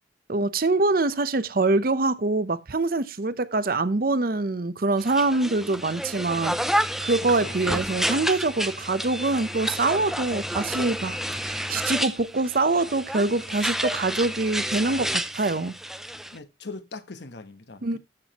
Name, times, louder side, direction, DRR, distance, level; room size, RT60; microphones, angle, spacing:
voice 1, 0.3-6.7 7.0-15.7 17.8-18.0, right 3 dB, 50° right, 0.7 m, -24 dB
sound 1, 5.0-16.4, equal, ahead, 0.4 m, -30 dB
voice 2, 16.3-18.0, left 3 dB, 70° left, 1.1 m, -40 dB
13.5 x 6.2 x 2.9 m
head